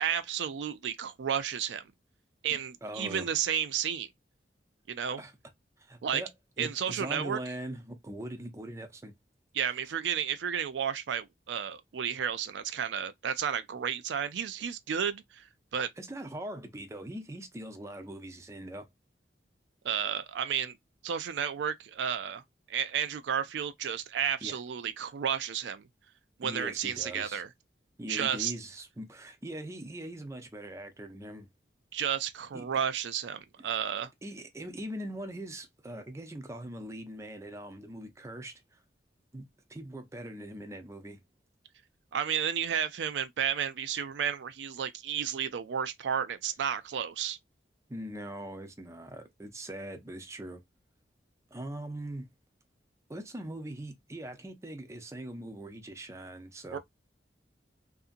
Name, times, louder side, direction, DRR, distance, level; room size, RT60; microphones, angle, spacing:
voice 1, 0.0-1.8 2.4-4.1 4.9-5.2 6.0-6.2 6.6-7.4 9.5-15.5 15.7-15.9 19.8-20.8 21.0-22.4 22.7-25.9 26.4-27.5 28.1-28.5 31.9-34.1 42.1-47.4 56.7-56.8, right 8 dB, 80° right, 0.4 m, -32 dB
voice 2, 2.8-3.3 5.2-5.3 5.8-6.3 6.6-9.1 16.0-18.9 24.4-24.6 26.4-27.4 28.0-31.5 32.5-32.7 34.2-38.8 39.3-41.2 47.9-50.6 51.5-52.3 53.1-56.8, right 1 dB, 15° right, 0.5 m, -41 dB
2.7 x 2.5 x 2.4 m
head